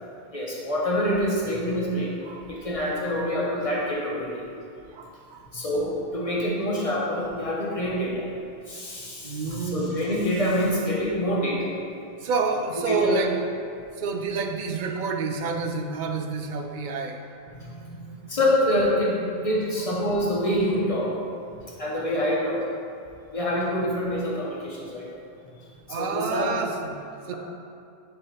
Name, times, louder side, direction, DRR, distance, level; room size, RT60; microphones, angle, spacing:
voice 1, 0.3-2.2 2.5-4.4 5.5-8.3 8.7-11.7 12.9-13.2 17.6-21.1 21.8-22.6 23.3-25.1 25.9-26.5, equal, 35° left, -4 dB, 1.3 m, -26 dB
voice 2, 4.9-5.4 9.2-9.9 12.2-13.4 14.0-17.2 25.9-27.3, right 4 dB, 55° right, 4 dB, 0.7 m, -28 dB
10.5 x 3.5 x 4.3 m, 2.5 s
omnidirectional pair, 1.1 m